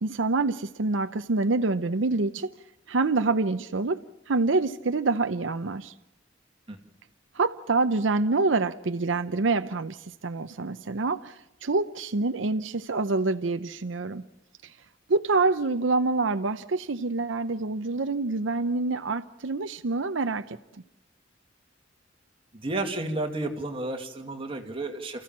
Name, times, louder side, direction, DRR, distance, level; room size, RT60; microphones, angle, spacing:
voice 1, 0.0-2.5 2.9-4.0 4.3-5.9 7.3-14.2 15.1-20.8, right 3 dB, 90° right, 9 dB, 0.7 m, -26 dB
voice 2, 22.5-25.2, right 2 dB, 30° right, 3 dB, 2.3 m, -32 dB
29.5 x 15.0 x 7.4 m, 0.88 s
head